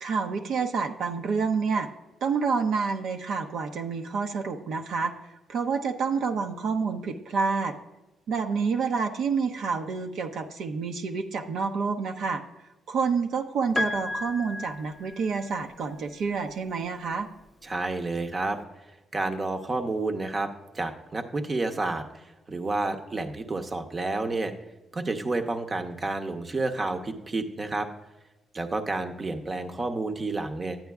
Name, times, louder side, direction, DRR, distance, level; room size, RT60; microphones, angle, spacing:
voice 1, 0.0-1.9 2.2-5.1 5.5-7.7 8.3-12.4 12.9-17.3, right 5 dB, 70° right, 4 dB, 0.6 m, -28 dB
Piano, 13.8-15.8 17.0-17.1, left 2 dB, 20° left, 0.3 m, -33 dB
voice 2, 17.6-18.6 19.1-24.5 24.9-27.9 28.5-30.8, right 2 dB, 30° right, 6 dB, 0.7 m, -30 dB
10.5 x 8.7 x 2.3 m, 1.1 s
cardioid pair, 90°, 0 cm